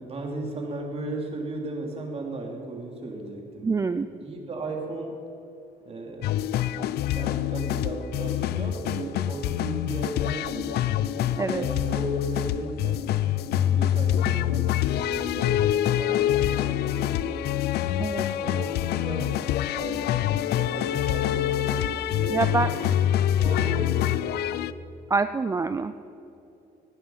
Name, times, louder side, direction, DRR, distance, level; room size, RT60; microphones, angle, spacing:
voice 1, 0.0-3.7 4.2-5.2 5.8-6.4 7.1-13.2 13.6-17.5 18.2-20.1 20.5-22.9 23.4-24.5, right 2 dB, 35° right, 1 dB, 2.9 m, -36 dB
voice 2, 3.6-4.1 11.4-11.7 18.0-18.3 22.3-22.7 25.1-25.9, right 4 dB, 20° right, 11 dB, 0.4 m, -25 dB
sound 1, 6.2-24.7, left 11 dB, 70° left, 0.5 m, -26 dB
18.5 x 9.3 x 5.7 m, 2.8 s
cardioid pair, 110°, 17 cm